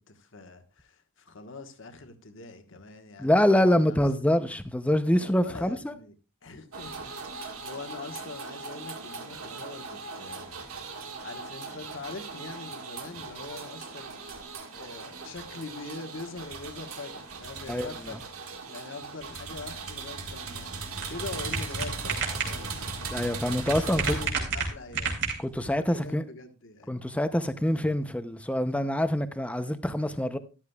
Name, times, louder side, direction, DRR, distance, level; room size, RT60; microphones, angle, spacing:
voice 1, 0.1-4.0 5.1-6.1 6.4-10.5 11.2-14.3 14.7-18.3 18.7-20.7 21.1-22.8 23.8-25.1 25.8-27.0, left 3 dB, 60° left, 1.3 m, -43 dB
voice 2, 3.2-6.0 17.7-17.9 23.1-24.2 25.4-26.2 26.9-30.4, left 1 dB, 5° left, 0.6 m, -25 dB
sound 1, 6.7-24.3, right 4 dB, 85° right, 1.7 m, -39 dB
Push tip of a bottle being used, 20.1-25.7, right 5 dB, 55° right, 3.2 m, -33 dB
13.0 x 11.5 x 2.3 m
head